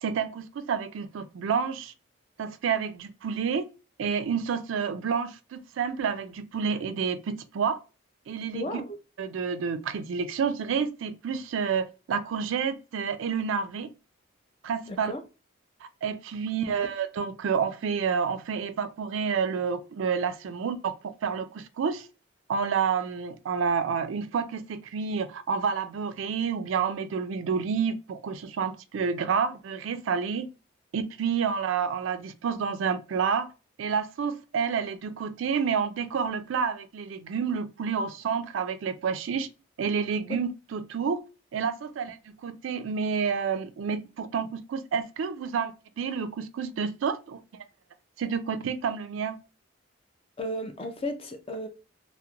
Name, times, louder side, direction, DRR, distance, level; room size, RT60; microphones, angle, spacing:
voice 1, 0.0-1.9 2.4-3.6 4.0-7.8 8.3-8.8 9.2-13.9 14.6-15.1 16.0-22.1 22.5-30.5 30.9-33.5 33.8-39.5 39.8-41.2 41.5-47.6 48.2-49.4, right 6 dB, 75° right, 0.3 m, -29 dB
voice 2, 8.5-9.0 14.9-15.2 50.4-51.7, left 1 dB, 30° left, 0.4 m, -34 dB
2.9 x 2.1 x 2.3 m
head